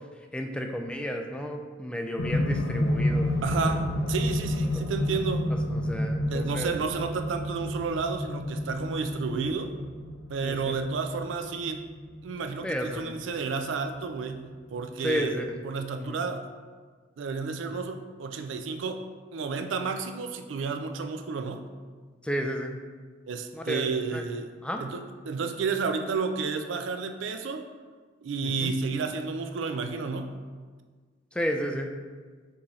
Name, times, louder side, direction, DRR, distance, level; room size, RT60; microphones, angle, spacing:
voice 1, 0.3-3.3 3.6-3.8 4.7-4.8 5.7-6.7 10.4-10.8 12.6-13.1 15.0-15.6 16.0-16.2 22.2-22.8 23.5-24.2 24.6-24.8 28.4-28.7 31.3-31.9, equal, 5° left, 3 dB, 0.3 m, -32 dB
sound 1, 2.2-14.3 15.3-15.4, left 1 dB, 80° left, 0.5 m, -30 dB
voice 2, 3.4-5.5 6.3-9.7 10.3-11.8 12.2-15.3 15.6-16.5 17.2-19.1 19.3-21.6 23.3-24.5 24.8-25.0 25.3-27.7 28.2-30.3, right 5 dB, 70° right, 7 dB, 0.4 m, -31 dB
5.9 x 2.8 x 3.1 m, 1.5 s
head